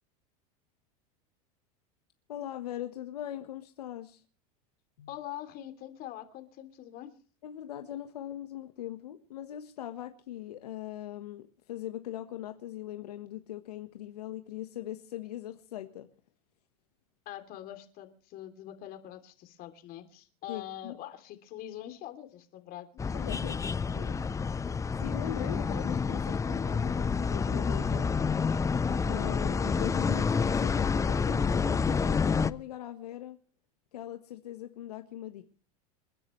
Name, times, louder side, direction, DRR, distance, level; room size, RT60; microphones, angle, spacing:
voice 1, 2.3-4.2 5.0-5.1 7.4-16.1 20.5-21.0 23.1-24.3 25.0-28.1 29.0-33.4 33.9-35.4, left 12 dB, 80° left, 1.4 m, -40 dB
voice 2, 5.1-7.1 17.2-23.2, left 12 dB, 50° left, 3.1 m, -44 dB
sound 1, 23.0-32.5, left 5 dB, 15° left, 0.7 m, -28 dB
28.5 x 11.0 x 3.2 m
hypercardioid pair, 100°, 20 cm